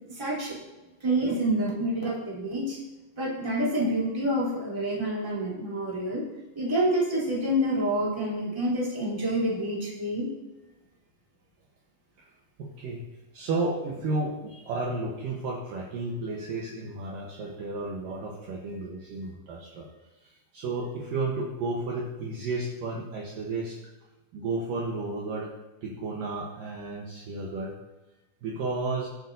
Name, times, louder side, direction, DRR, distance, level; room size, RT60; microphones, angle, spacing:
voice 1, 0.1-0.6 1.0-2.8 3.2-6.2 6.5-10.3, right 1 dB, 5° right, -6 dB, 2.7 m, -27 dB
voice 2, 12.6-13.0 13.3-19.9 20.2-23.8 24.3-25.5 25.8-27.7 28.4-29.1, right 3 dB, 70° right, -2 dB, 2.3 m, -32 dB
20.5 x 7.4 x 2.7 m, 1.1 s
omnidirectional pair, 4.9 m